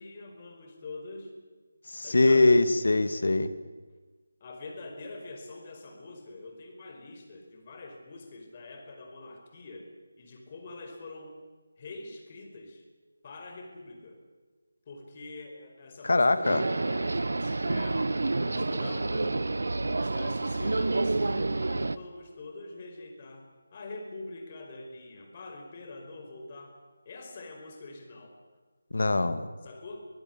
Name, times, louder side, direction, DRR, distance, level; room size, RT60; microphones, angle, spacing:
voice 1, 0.0-1.3 2.0-2.5 4.4-11.4 11.8-12.8 13.2-14.2 14.9-19.6 20.0-26.8 27.0-28.4 29.6-30.1, left 2 dB, 30° left, 3 dB, 4.8 m, -44 dB
voice 2, 1.9-3.5 16.0-16.6 28.9-29.5, left 2 dB, 65° left, 12 dB, 2.0 m, -22 dB
sound 1, 16.4-22.0, right 2 dB, 65° right, 1.0 m, -29 dB
24.5 x 16.0 x 9.7 m, 1.4 s
figure-of-eight pair, 160°, 0 cm